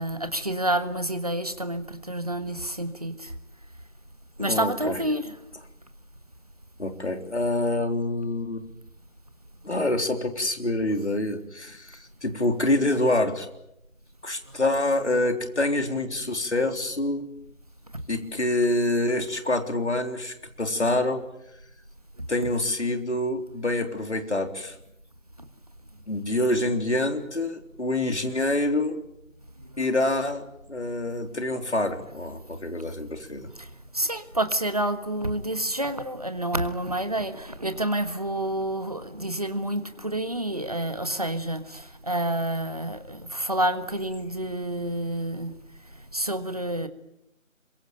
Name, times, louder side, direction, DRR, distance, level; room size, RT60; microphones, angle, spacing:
voice 1, 0.0-3.3 4.4-5.2 33.9-45.5 46.1-46.9, right 1 dB, 30° right, 1.5 m, -28 dB
voice 2, 4.4-5.0 6.8-8.7 9.6-13.5 14.2-17.3 18.1-21.2 22.3-24.8 26.1-29.0 29.8-33.5, left 2 dB, 55° left, 3.8 m, -26 dB
26.5 x 23.0 x 9.1 m
figure-of-eight pair, 170°, 40 cm